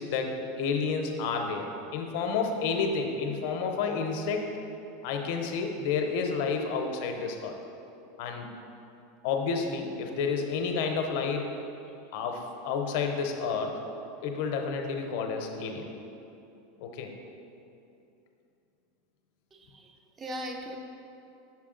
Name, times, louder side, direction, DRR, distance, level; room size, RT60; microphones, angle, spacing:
voice 1, 0.0-4.5 5.0-7.5 8.2-8.5 9.2-11.6 12.1-13.8 14.2-15.9 16.8-17.1, left 5 dB, 55° left, 4 dB, 0.6 m, -30 dB
voice 2, 19.5-20.8, equal, 20° right, 3 dB, 0.4 m, -39 dB
5.9 x 4.5 x 3.7 m, 2.8 s
supercardioid pair, 155°, 0 cm